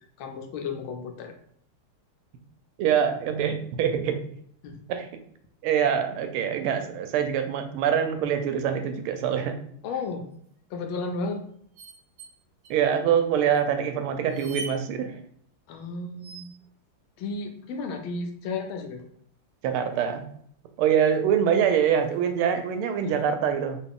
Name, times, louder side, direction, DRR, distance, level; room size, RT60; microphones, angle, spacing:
voice 1, 0.2-1.3 4.6-4.8 9.8-10.3 10.7-11.4 15.7-16.5 17.2-19.0 23.0-23.2, left 3 dB, 80° left, 4 dB, 1.4 m, -33 dB
voice 2, 2.8-4.2 4.9-5.1 5.6-9.6 12.7-15.1 19.6-20.3 20.8-23.8, right 8 dB, 90° right, 7 dB, 1.5 m, -24 dB
sound 1, 10.0-10.3 11.7-12.3 12.6-12.7 13.5-13.6 14.2-14.8 16.2-16.7 18.7-19.2 20.8-20.9 21.1-21.2 21.9-22.8 23.1-23.2, right 3 dB, 65° right, 1.0 m, -42 dB
3.9 x 2.4 x 3.6 m, 0.64 s
omnidirectional pair, 2.3 m